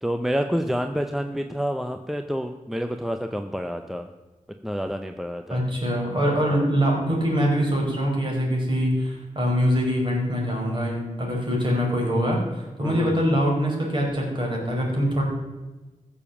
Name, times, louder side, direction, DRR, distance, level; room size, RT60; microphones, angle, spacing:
voice 1, 0.0-4.1 4.6-5.6 6.5-6.7 12.8-13.4, equal, ahead, 6 dB, 0.7 m, -28 dB
voice 2, 5.5-15.2, equal, 35° right, -2 dB, 4.8 m, -24 dB
15.0 x 7.2 x 7.2 m, 1.1 s
wide cardioid pair, 100°, 13 cm